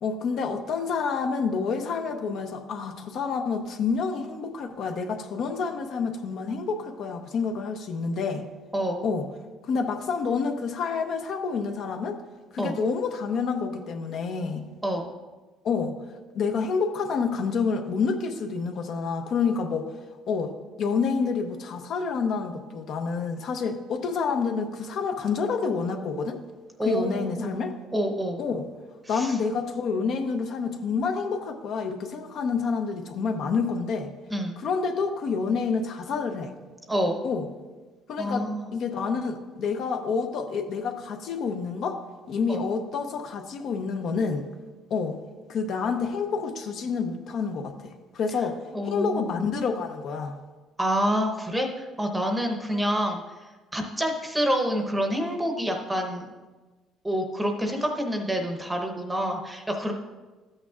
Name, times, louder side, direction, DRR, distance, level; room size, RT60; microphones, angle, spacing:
voice 1, 0.0-8.4 9.0-9.2 9.6-12.2 12.5-14.7 15.6-15.9 16.3-19.9 20.3-20.5 20.8-26.4 26.8-27.7 28.4-28.7 29.1-34.1 34.6-36.5 37.2-37.5 38.1-42.0 42.3-44.5 44.9-45.2 45.5-48.6 48.8-50.4, left 5 dB, 50° left, 5 dB, 0.7 m, -28 dB
voice 2, 8.7-9.1 12.6-12.8 14.8-15.1 26.8-27.5 27.9-28.4 29.1-29.4 34.3-34.6 36.9-37.2 38.2-38.6 42.5-42.6 48.7-49.3 50.8-53.2 53.7-56.3 57.0-59.9, equal, 5° right, 3 dB, 0.8 m, -27 dB
13.5 x 8.7 x 2.4 m, 1.3 s
cardioid pair, 160°, 0 cm